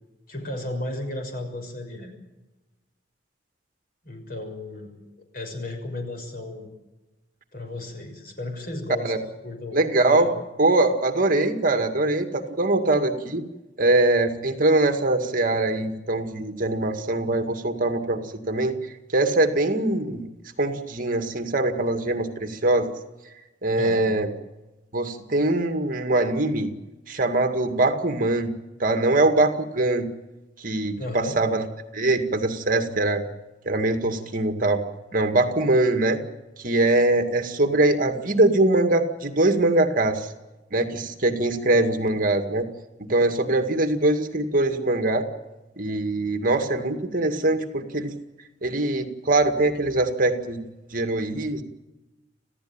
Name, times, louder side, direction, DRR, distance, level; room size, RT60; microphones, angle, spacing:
voice 1, 0.3-2.1 4.0-5.0 5.3-6.7 7.5-9.2 9.4-9.8 10.1-10.3 23.8-24.1 31.0-31.4, left 2 dB, 55° left, 5 dB, 6.3 m, -34 dB
voice 2, 9.7-10.3 10.6-13.4 13.8-18.7 19.1-20.3 20.6-22.9 23.6-24.3 24.9-26.7 27.1-28.5 28.8-30.1 30.6-31.6 31.9-33.2 33.7-34.8 35.1-36.2 36.6-40.3 40.7-42.7 43.1-45.3 45.8-48.1 48.6-50.6 50.9-51.6, right 2 dB, 50° right, 7 dB, 2.2 m, -22 dB
27.5 x 16.0 x 9.0 m, 1.1 s
head